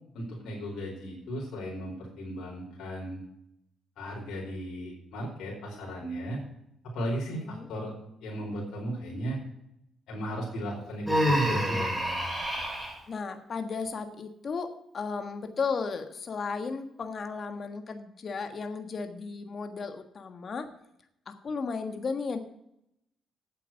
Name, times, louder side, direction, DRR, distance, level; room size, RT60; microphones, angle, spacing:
voice 1, 0.1-3.2 4.0-6.4 6.8-7.9 8.2-9.4 10.1-11.9, equal, 80° left, -3 dB, 4.6 m, -36 dB
Human voice, 11.1-12.9, equal, 5° right, 5.2 m, -27 dB
voice 2, 13.1-20.7 21.3-22.4, left 5 dB, 45° left, 7 dB, 1.5 m, -34 dB
9.0 x 7.6 x 9.0 m, 0.79 s
cardioid pair, 90°, 0 cm